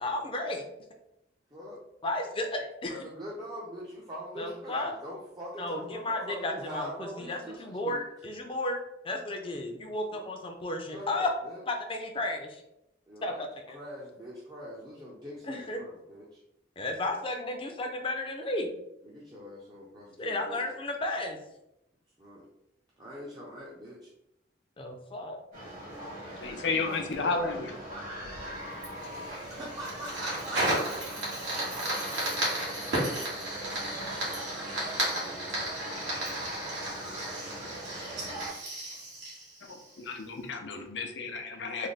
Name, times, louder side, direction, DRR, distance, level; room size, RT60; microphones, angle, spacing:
voice 1, 0.0-0.6 2.0-3.0 4.4-4.9 5.6-8.8 9.0-11.3 11.7-12.6 13.2-13.8 15.4-15.8 16.8-18.7 20.2-21.4 24.8-25.4, left 2 dB, 30° left, 3 dB, 0.5 m, -33 dB
voice 2, 1.5-1.8 2.9-8.0 10.1-10.3 10.8-11.6 13.1-13.4 13.7-16.4 19.0-20.6 22.2-22.4 23.0-24.1 29.4-31.3, equal, 25° right, -6 dB, 0.6 m, -43 dB
sound 1, 25.5-38.5, equal, 50° right, 1.3 m, -41 dB
voice 3, 26.4-27.7 28.3-28.4 39.6-41.9, left 4 dB, 80° left, 5 dB, 0.5 m, -32 dB
Fire, 28.8-40.2, right 1 dB, 80° right, 1.4 m, -34 dB
3.3 x 2.1 x 3.9 m, 0.83 s
head